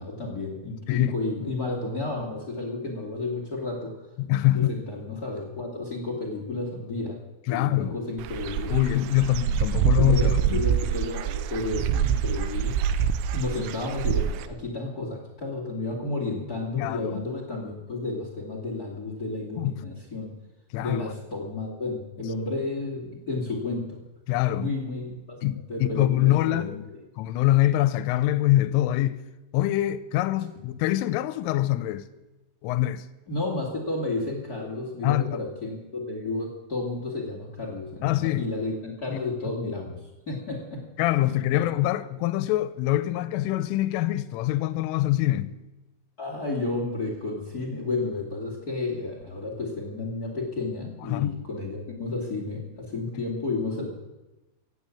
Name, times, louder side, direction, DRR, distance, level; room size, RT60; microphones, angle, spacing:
voice 1, 0.0-3.9 4.5-7.2 7.5-9.0 9.9-12.8 13.3-20.3 20.8-24.0 24.5-26.7 33.3-40.8 41.5-41.7 46.2-53.9, left 2 dB, 50° left, 1.1 m, -32 dB
voice 2, 4.2-4.7 7.5-8.0 8.7-10.6 16.8-17.2 19.6-19.7 20.7-21.0 24.3-24.7 25.4-26.8 27.2-29.2 29.5-32.1 32.6-33.0 35.0-35.4 38.0-38.4 39.1-39.2 41.0-45.5 51.1-51.3, left 14 dB, 80° left, 3.1 m, -24 dB
Dog / Bird, 8.2-14.5, right 9 dB, 85° right, 3.3 m, -26 dB
16.5 x 9.6 x 8.5 m
omnidirectional pair, 6.0 m